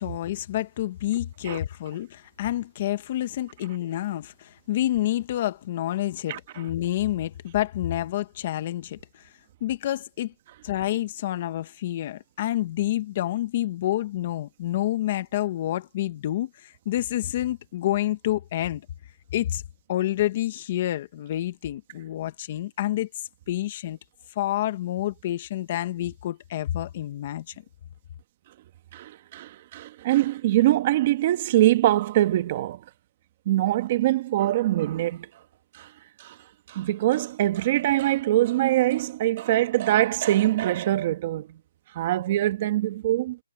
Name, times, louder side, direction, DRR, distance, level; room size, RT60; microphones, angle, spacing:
voice 1, 0.0-9.2 9.6-10.3 10.6-18.8 19.3-19.6 19.9-23.1 23.5-24.0 24.3-27.5, left 13 dB, 25° left, 1.3 m, -28 dB
voice 2, 28.9-32.8 33.4-35.3 35.7-35.9 36.2-36.4 36.7-41.6 41.9-43.4, right 14 dB, 25° right, 1.5 m, -23 dB
hypercardioid pair, 170°, 0 cm